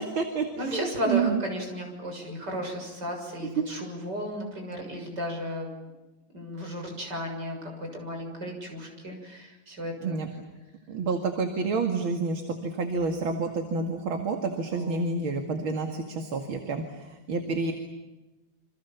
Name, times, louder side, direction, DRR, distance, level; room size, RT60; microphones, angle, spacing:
voice 1, 0.0-1.4 3.6-3.7 10.0-10.3 10.9-17.7, right 4 dB, 70° right, 5 dB, 3.0 m, -29 dB
voice 2, 0.6-5.7 6.3-10.2 14.7-15.1, equal, 50° right, 2 dB, 7.6 m, -34 dB
29.0 x 26.0 x 7.2 m, 1.1 s
omnidirectional pair, 2.3 m